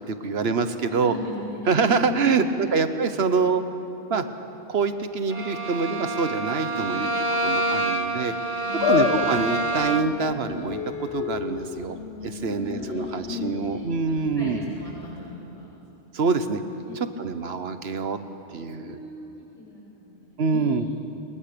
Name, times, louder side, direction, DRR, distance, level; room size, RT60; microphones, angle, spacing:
voice 1, 0.0-1.1 1.7-3.6 4.1-4.2 4.7-7.1 7.4-8.3 8.9-12.0 12.2-14.7 16.1-16.6 16.9-18.2 18.5-19.0 20.4-20.9, right 5 dB, 70° right, 10 dB, 1.3 m, -25 dB
voice 2, 0.9-2.8 8.7-9.3 12.4-15.6 15.9-16.1 16.9-17.0 18.6-20.8, left 1 dB, 30° left, -8 dB, 7.2 m, -37 dB
Bowed string instrument, 5.3-10.3, right 2 dB, 30° right, 1.2 m, -27 dB
sound 1, 8.8-15.2, left 8 dB, 70° left, 1.1 m, -30 dB
24.5 x 21.5 x 6.9 m, 3.0 s
omnidirectional pair, 1.1 m